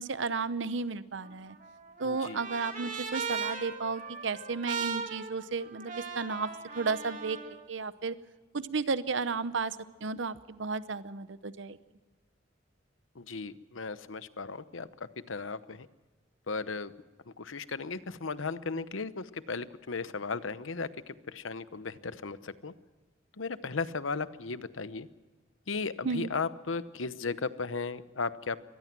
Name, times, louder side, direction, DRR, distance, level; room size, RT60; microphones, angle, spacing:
voice 1, 0.0-1.6 2.0-6.5 6.7-8.1 8.5-9.8 10.0-11.8 26.0-26.3, right 4 dB, 70° right, 14 dB, 0.8 m, -33 dB
Trumpet, 1.2-7.5, right 5 dB, 40° right, 2.6 m, -38 dB
voice 2, 2.0-2.4 13.2-14.9 15.3-15.9 16.5-16.9 17.4-22.7 23.4-25.1 25.7-28.6, left 4 dB, 85° left, 14 dB, 0.9 m, -36 dB
24.5 x 19.0 x 6.1 m, 1.3 s
head